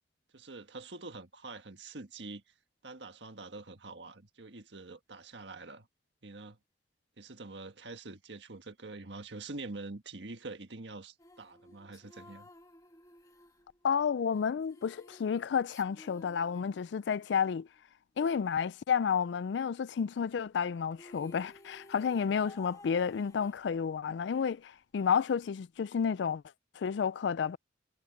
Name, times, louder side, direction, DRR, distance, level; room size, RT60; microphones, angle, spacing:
voice 1, 0.3-2.4 2.8-5.9 6.2-6.6 7.2-12.5, right 3 dB, 70° right, 1.6 m, -45 dB
sound 1, 11.2-17.4 20.6-20.7 20.9-24.1, left 1 dB, 20° left, 1.9 m, -56 dB
voice 2, 13.8-17.7 18.2-26.4 26.8-27.6, left 7 dB, 70° left, 0.4 m, -31 dB
head